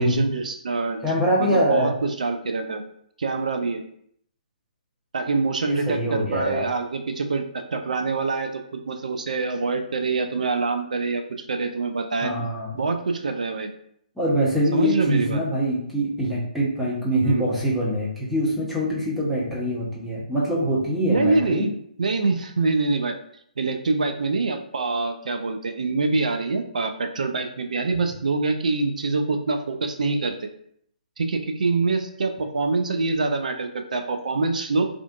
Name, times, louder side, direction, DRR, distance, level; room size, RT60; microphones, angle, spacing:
voice 1, 0.0-1.0 1.4-2.8 3.2-3.8 5.1-12.3 12.8-13.7 14.7-15.4 17.2-17.5 21.1-21.7 22.0-23.2 23.6-30.5 31.2-34.9, right 3 dB, 60° right, 6 dB, 0.4 m, -25 dB
voice 2, 1.0-1.9 5.7-6.6 12.2-12.8 14.2-21.7, equal, ahead, -7 dB, 0.6 m, -24 dB
2.4 x 2.4 x 2.3 m, 0.68 s
figure-of-eight pair, 130°, 5 cm